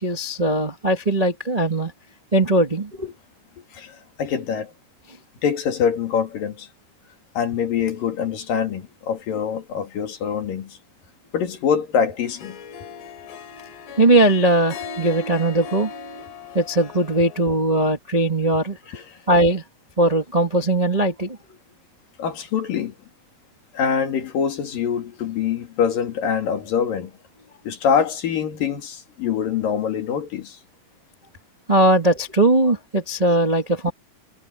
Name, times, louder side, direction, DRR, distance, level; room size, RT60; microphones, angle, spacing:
voice 1, 0.0-1.9 2.3-3.1 14.0-15.9 16.5-18.8 19.3-19.6 20.0-21.4 31.7-33.9, right 1 dB, 80° right, 0.3 m, -19 dB
voice 2, 3.7-4.7 5.4-6.7 7.4-10.8 11.3-12.6 18.9-19.0 22.2-22.9 23.7-27.1 27.7-30.6, left 7 dB, 60° left, 4.1 m, -24 dB
Harp, 12.2-17.6, left 4 dB, 85° left, 5.4 m, -38 dB
omnidirectional pair, 4.7 m